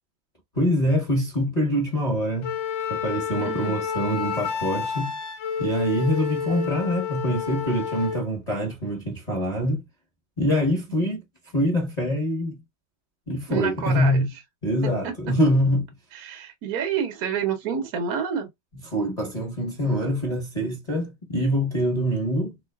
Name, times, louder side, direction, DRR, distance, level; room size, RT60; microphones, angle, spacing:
voice 1, 0.5-2.5 2.9-5.1 5.6-9.8 10.4-11.2 11.5-12.6 13.3-14.3 14.6-15.9 18.9-22.5, equal, 25° left, 1.2 m, -24 dB
Wind instrument woodwind instrument, 2.4-8.2, left 7 dB, 75° left, 1.5 m, -29 dB
voice 2, 3.4-3.8 13.5-14.2 15.0-15.1 16.1-18.5, right 7 dB, 55° right, 1.3 m, -28 dB
3.8 x 3.7 x 2.2 m
omnidirectional pair, 2.1 m